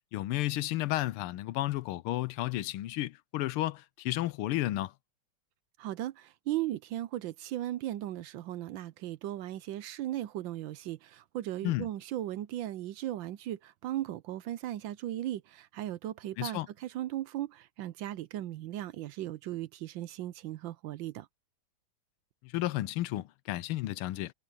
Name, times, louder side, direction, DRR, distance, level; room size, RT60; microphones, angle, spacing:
voice 1, 0.1-4.9 11.6-11.9 16.4-16.7 22.4-24.3, left 16 dB, 90° left, 1.6 m, -32 dB
voice 2, 5.8-21.3, right 13 dB, 75° right, 1.2 m, -37 dB
omnidirectional pair, 2.3 m